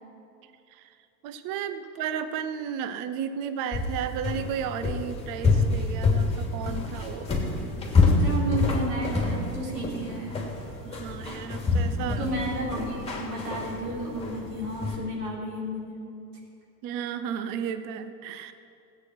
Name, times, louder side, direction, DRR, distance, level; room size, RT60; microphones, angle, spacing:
voice 1, 1.2-7.3 10.8-12.3 16.8-18.5, right 8 dB, 40° right, 10 dB, 0.8 m, -33 dB
sound 1, 3.7-15.0, left 3 dB, 10° left, 2.9 m, -27 dB
voice 2, 8.0-10.4 12.0-16.0, right 1 dB, 75° right, -3 dB, 4.1 m, -33 dB
16.5 x 8.9 x 6.1 m, 2.6 s
hypercardioid pair, 110°, 50 cm